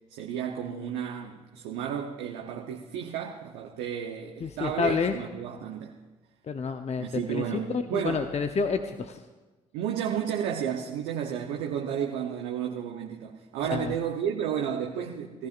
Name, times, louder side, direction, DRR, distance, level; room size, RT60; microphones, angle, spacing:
voice 1, 0.1-6.0 7.0-8.3 9.7-15.5, right 8 dB, 80° right, 1 dB, 0.9 m, -32 dB
voice 2, 4.4-5.1 6.4-9.2 13.7-13.9, left 5 dB, 40° left, 7 dB, 0.9 m, -29 dB
21.0 x 14.0 x 2.6 m, 1.2 s
hypercardioid pair, 50°, 17 cm